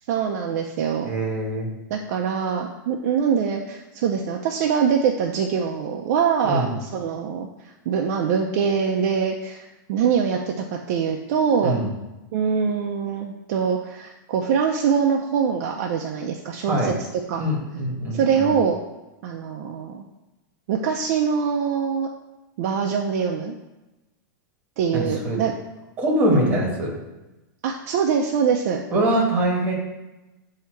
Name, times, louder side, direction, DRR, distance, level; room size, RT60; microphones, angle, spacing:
voice 1, 0.1-1.1 1.9-7.5 7.9-9.6 9.9-11.9 12.3-16.8 17.3-17.4 18.1-18.8 19.2-20.0 20.7-22.1 22.6-23.5 24.8-25.5 27.6-28.8, right 7 dB, 45° right, 1 dB, 0.5 m, -23 dB
voice 2, 1.0-1.7 6.4-6.7 11.6-11.9 16.7-16.9 17.4-18.5 24.9-25.4 26.0-26.9 28.9-29.7, right 1 dB, 15° right, -2 dB, 1.3 m, -23 dB
8.2 x 2.8 x 4.4 m, 1.0 s
supercardioid pair, 165°, 11 cm